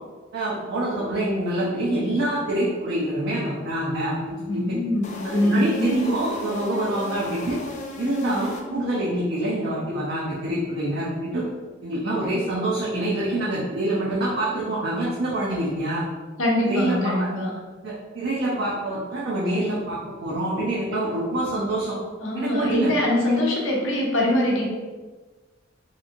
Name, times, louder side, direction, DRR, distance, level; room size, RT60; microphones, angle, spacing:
voice 1, 0.3-4.8 5.2-7.6 8.0-11.5 11.8-16.0 16.6-17.3 17.8-22.0 22.4-22.9 23.3-23.4, right 1 dB, 60° right, -6 dB, 0.5 m, -26 dB
voice 2, 4.5-5.9 16.4-17.5 22.2-24.7, left 1 dB, 85° left, -2 dB, 0.7 m, -23 dB
sound 1, 5.0-9.1, left 3 dB, 40° left, 0.3 m, -36 dB
2.9 x 2.6 x 2.5 m, 1.3 s
head